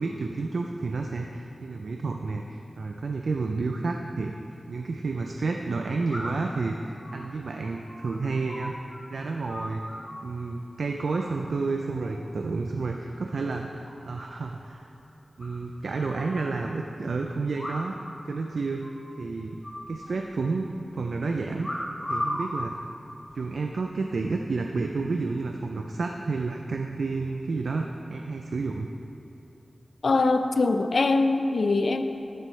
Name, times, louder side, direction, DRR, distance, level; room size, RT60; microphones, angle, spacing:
voice 1, 0.0-4.3 4.7-8.7 9.1-9.8 10.2-14.8 15.4-18.0 18.3-18.8 19.2-19.6 19.9-20.7 20.9-21.7 22.1-22.7 23.3-28.9, right 3 dB, 80° right, 3 dB, 0.4 m, -30 dB
sound 1, 6.1-6.5 7.0-9.0 9.2-10.3 11.1-11.6 11.9-12.3 12.7-13.2 13.5-13.6 13.8-13.9 14.2-14.3 14.6-14.7 15.4-16.4 17.5-18.1 18.4-18.5 18.8-19.1 19.6-20.5 21.6-22.5 23.2-23.6, left 1 dB, 30° left, 1.9 m, -37 dB
voice 2, 30.0-32.0, left 3 dB, 70° left, 8 dB, 0.4 m, -22 dB
13.5 x 6.3 x 3.2 m, 2.9 s
wide cardioid pair, 95°, 0 cm